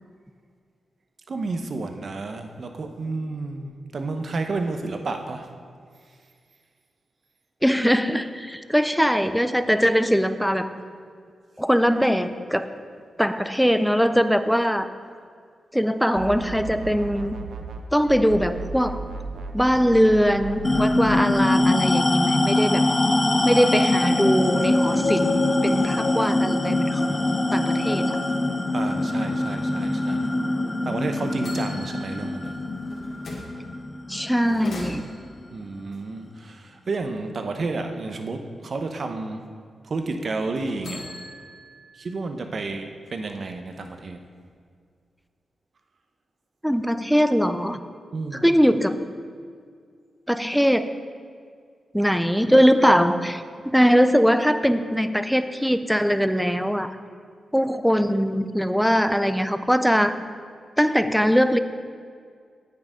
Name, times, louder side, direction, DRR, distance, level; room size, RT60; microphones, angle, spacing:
voice 1, 1.3-5.5 28.7-30.3 30.8-32.6 35.5-39.4 39.8-41.0 41.9-44.2 48.1-48.5, right 3 dB, 50° right, 6 dB, 0.9 m, -31 dB
voice 2, 7.6-10.7 11.6-12.7 13.2-14.9 15.7-17.4 17.9-19.0 19.5-22.8 23.4-28.2 34.1-35.1 46.6-47.8 48.4-49.0 50.3-51.0 51.9-56.9 57.5-60.1 60.8-61.6, equal, ahead, 11 dB, 0.5 m, -21 dB
sound 1, 16.2-17.8 18.1-21.2, right 3 dB, 85° right, 0.8 m, -35 dB
sound 2, 20.6-35.5, left 2 dB, 25° left, 0.7 m, -23 dB
sound 3, 30.8-31.0 31.4-33.6 34.3-35.4 40.5-42.1 42.6-42.7 43.1-44.1, left 1 dB, 65° left, 2.4 m, -41 dB
9.4 x 8.9 x 5.1 m, 2.1 s
wide cardioid pair, 105°, 0 cm